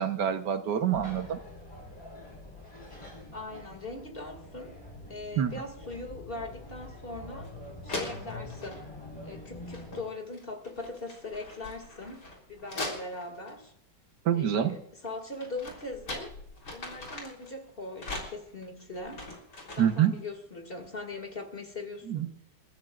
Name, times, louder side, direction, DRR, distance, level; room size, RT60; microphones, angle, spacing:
voice 1, 0.0-1.4 5.4-5.5 14.2-14.8 19.8-20.1 22.1-22.3, right 9 dB, 70° right, 7 dB, 1.7 m, -26 dB
sound 1, 0.9-10.0, left 1 dB, 15° left, 4.3 m, -45 dB
voice 2, 3.3-4.7 5.1-7.5 7.8-8.8 9.2-13.7 14.3-16.3 16.7-19.2 19.6-22.3, left 2 dB, 30° left, 5 dB, 2.5 m, -40 dB
sound 2, 7.4-7.5 7.9-8.8 9.6-10.1 10.3-13.5 15.1-17.5 18.0-20.0, left 2 dB, 70° left, 4.2 m, -41 dB
29.0 x 14.0 x 2.5 m, 0.76 s
omnidirectional pair, 1.9 m